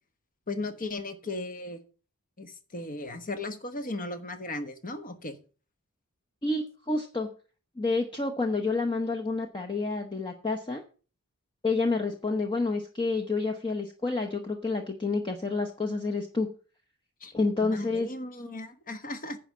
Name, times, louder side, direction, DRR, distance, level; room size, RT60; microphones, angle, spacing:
voice 1, 0.5-1.8 2.4-5.3 17.2-17.3 17.6-19.4, left 2 dB, 40° left, 8 dB, 1.3 m, -36 dB
voice 2, 6.4-7.3 7.8-10.8 11.6-16.5 17.3-18.1, left 3 dB, 20° left, 3 dB, 1.0 m, -29 dB
10.0 x 5.1 x 7.3 m, 0.38 s
head